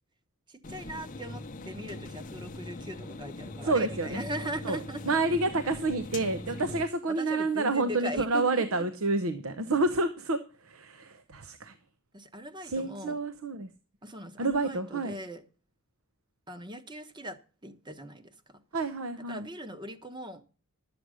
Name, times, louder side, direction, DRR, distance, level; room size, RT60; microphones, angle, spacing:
voice 1, 0.5-5.2 7.1-8.8 12.1-13.2 14.0-15.4 16.5-18.6 19.3-20.4, right 1 dB, 20° right, 1.0 m, -40 dB
sound 1, 0.6-6.8, left 2 dB, 35° left, 0.7 m, -41 dB
voice 2, 3.6-4.2 4.6-4.8 5.1-11.7 12.6-13.7 14.4-15.2 18.7-19.5, right 3 dB, 75° right, 0.8 m, -29 dB
11.5 x 7.8 x 6.2 m
head